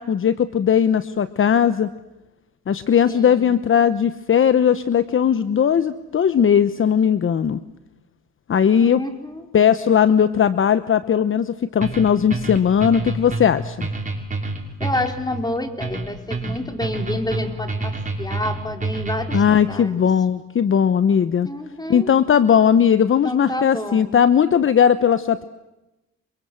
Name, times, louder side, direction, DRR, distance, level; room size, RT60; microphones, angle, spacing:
voice 1, 0.0-1.9 2.7-7.6 8.5-9.0 9.5-13.9 19.3-21.5 21.9-25.4, left 8 dB, 45° left, 14 dB, 1.0 m, -18 dB
voice 2, 3.1-3.6 8.8-9.4 14.8-20.0 21.4-22.1 23.2-24.2, left 1 dB, 15° left, 6 dB, 4.0 m, -29 dB
sound 1, 11.8-19.7, right 2 dB, 25° right, 6.0 m, -28 dB
28.5 x 24.0 x 7.7 m, 0.98 s
cardioid pair, 90°, 30 cm